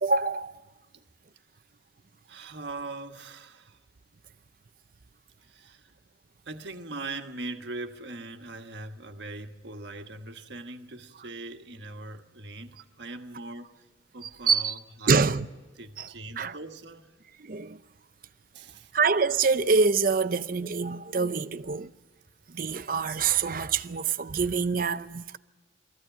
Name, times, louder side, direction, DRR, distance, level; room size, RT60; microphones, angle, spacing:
voice 1, 0.0-0.6 14.2-14.8 15.1-15.5 16.0-16.1 16.4-16.6 17.4-17.8 18.9-21.9 22.5-25.4, right 4 dB, 45° right, 0.6 m, -25 dB
voice 2, 2.3-3.8 5.4-5.9 6.4-13.8 14.1-15.3 15.8-17.1 18.5-18.9, right 2 dB, 65° right, 1.4 m, -41 dB
21.0 x 15.0 x 9.1 m
head